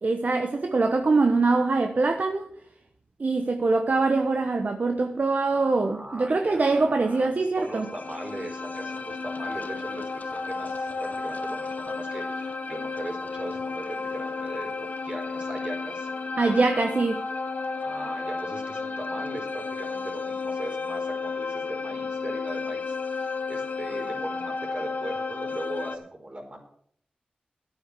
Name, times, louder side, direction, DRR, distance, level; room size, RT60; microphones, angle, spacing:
voice 1, 0.0-2.4 3.2-7.9 16.4-17.2, right 3 dB, 55° right, 1.2 m, -23 dB
voice 2, 5.5-16.1 17.8-26.6, right 1 dB, 35° right, 4.5 m, -39 dB
sound 1, 7.6-26.0, left 4 dB, 60° left, 1.3 m, -32 dB
11.5 x 8.8 x 6.8 m
cardioid pair, 50°, 3 cm